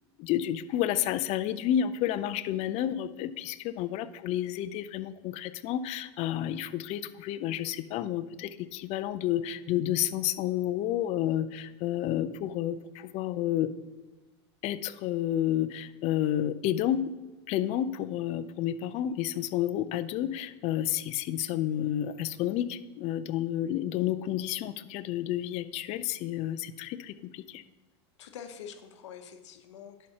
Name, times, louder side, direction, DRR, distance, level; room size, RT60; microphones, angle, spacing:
voice 1, 0.2-13.7 14.6-17.1 17.5-27.6, left 11 dB, 45° left, 14 dB, 0.5 m, -30 dB
voice 2, 28.2-30.1, left 8 dB, 85° left, 8 dB, 0.9 m, -45 dB
11.0 x 5.5 x 2.9 m, 1.2 s
supercardioid pair, 115°, 15 cm